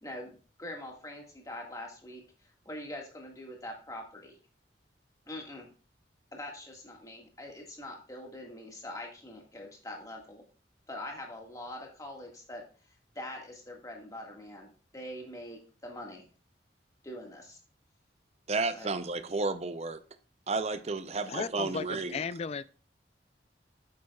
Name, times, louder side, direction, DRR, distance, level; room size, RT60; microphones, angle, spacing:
voice 1, 0.0-4.4 5.3-5.7 6.3-10.4 10.9-12.6 13.2-16.3 17.0-17.6 18.7-18.9, left 1 dB, 20° left, 1.8 m, -43 dB
voice 2, 18.5-20.0 20.5-22.2, right 3 dB, 35° right, 0.6 m, -32 dB
voice 3, 21.3-22.6, left 5 dB, 35° left, 0.3 m, -35 dB
8.4 x 7.7 x 2.3 m
head